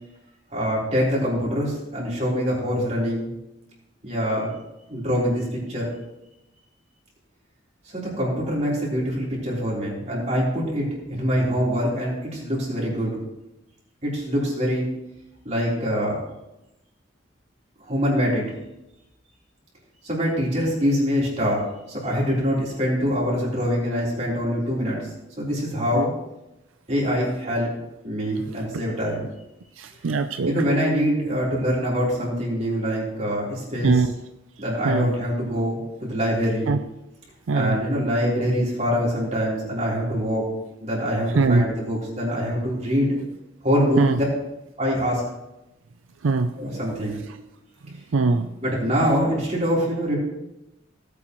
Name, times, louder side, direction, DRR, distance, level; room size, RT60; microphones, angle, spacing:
voice 1, 0.5-3.3 4.0-4.5 4.9-5.9 7.9-13.2 14.0-14.9 15.4-16.2 17.8-18.5 20.0-25.1 25.4-26.1 26.9-27.7 28.0-29.2 30.4-33.9 34.6-36.7 37.5-40.4 40.8-43.2 43.6-44.3 44.8-45.2 46.6-47.2 48.6-50.2, equal, 35° right, -5 dB, 3.9 m, -24 dB
voice 2, 29.8-30.7 33.8-34.1 34.8-35.1 36.7-36.8 37.5-37.8 41.4-41.6 44.0-44.2 46.2-46.8 48.1-48.5, right 3 dB, 85° right, 8 dB, 0.5 m, -22 dB
17.5 x 8.4 x 3.1 m, 0.92 s
head